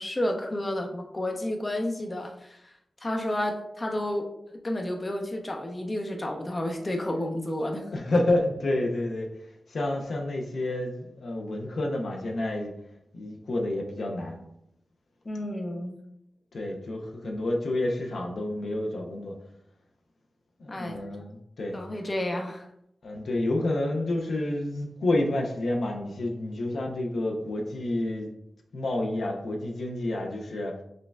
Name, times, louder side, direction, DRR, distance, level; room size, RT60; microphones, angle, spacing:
voice 1, 0.0-2.7 3.0-4.3 4.6-7.9 15.2-16.0 20.7-21.0 21.7-22.6, left 1 dB, 35° left, 2 dB, 0.7 m, -31 dB
voice 2, 7.9-12.7 13.1-14.4 16.5-19.3 20.6-21.8 23.0-28.3 28.7-30.7, left 1 dB, 75° left, 1 dB, 0.5 m, -29 dB
6.3 x 2.2 x 2.2 m, 0.78 s
cardioid pair, 50°, 0 cm